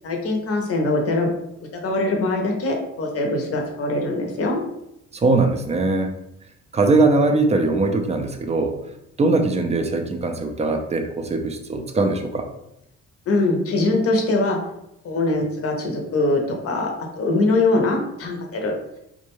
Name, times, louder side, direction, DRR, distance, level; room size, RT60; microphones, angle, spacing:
voice 1, 0.0-1.3 1.8-4.6 13.3-14.6 15.0-18.7, left 2 dB, 50° left, 1 dB, 0.7 m, -22 dB
voice 2, 5.1-6.1 6.7-8.8 9.2-12.5, right 3 dB, 20° right, 5 dB, 0.4 m, -21 dB
2.3 x 2.2 x 3.0 m, 0.82 s
cardioid pair, 90°, 30 cm